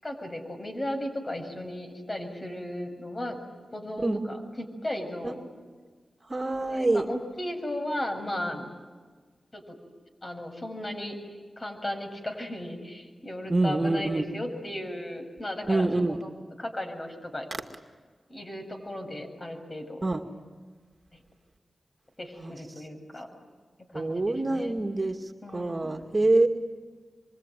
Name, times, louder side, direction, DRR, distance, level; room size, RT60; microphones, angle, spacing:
voice 1, 0.0-3.4 3.7-5.5 6.7-8.7 9.5-9.8 10.2-11.2 11.6-16.2 16.6-17.5 18.3-20.0 22.2-23.3 23.9-24.8 25.4-25.9, left 1 dB, 35° left, 4 dB, 6.9 m, -35 dB
voice 2, 6.3-7.1 13.5-14.2 15.7-16.2 20.0-20.2 22.4-22.5 23.9-26.5, right 2 dB, 35° right, 4 dB, 2.1 m, -26 dB
26.5 x 24.0 x 9.3 m, 1.5 s
cardioid pair, 50°, 0 cm